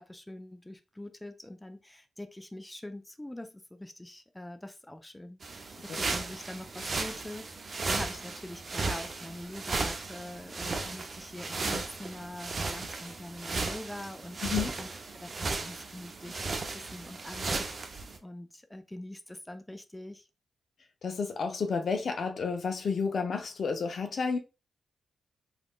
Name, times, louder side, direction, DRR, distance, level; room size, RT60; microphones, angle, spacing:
voice 1, 0.0-14.4 14.8-20.3, left 1 dB, 15° left, 0.4 m, -44 dB
sound 1, 5.4-18.2, right 3 dB, 55° right, 0.5 m, -35 dB
voice 2, 14.4-14.7 21.0-24.4, left 5 dB, 65° left, 0.5 m, -31 dB
3.4 x 2.5 x 2.3 m
supercardioid pair, 45°, 0 cm